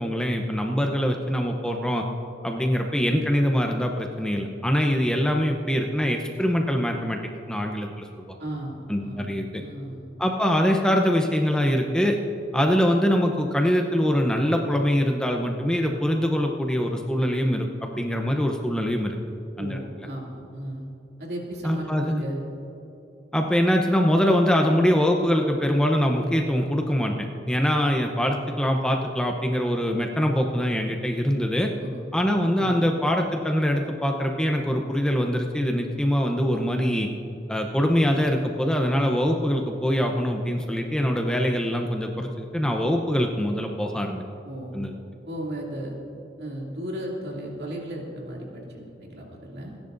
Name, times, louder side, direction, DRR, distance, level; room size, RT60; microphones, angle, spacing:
voice 1, 0.0-2.0 2.4-7.2 7.5-8.1 8.9-9.6 10.2-12.2 12.5-19.2 19.6-19.8 21.6-22.2 23.3-27.1 27.5-31.7 32.1-37.1 37.5-44.2 44.7-44.9, equal, 5° left, 2 dB, 0.7 m, -23 dB
voice 2, 8.4-10.0 19.6-20.8 21.2-22.4 31.8-32.0 32.6-32.8 44.4-44.9 45.3-46.0 46.4-49.8, right 1 dB, 70° right, -2 dB, 2.6 m, -35 dB
29.5 x 10.5 x 2.6 m, 2.9 s
head